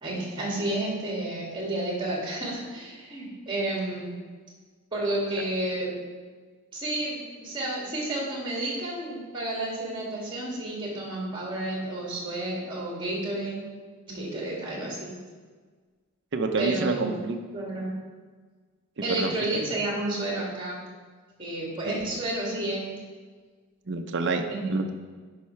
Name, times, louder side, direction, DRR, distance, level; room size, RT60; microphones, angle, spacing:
voice 1, 0.0-4.1 4.9-5.9 6.7-13.6 14.1-15.2 16.6-17.2 17.5-17.9 19.0-20.8 21.4-22.8 24.5-24.6, right 1 dB, 20° right, -4 dB, 2.2 m, -31 dB
voice 2, 16.3-17.4 19.0-19.7 21.8-21.9 23.9-24.4 24.7-24.9, right 3 dB, 55° right, 6 dB, 0.6 m, -28 dB
10.0 x 5.7 x 3.2 m, 1.5 s
head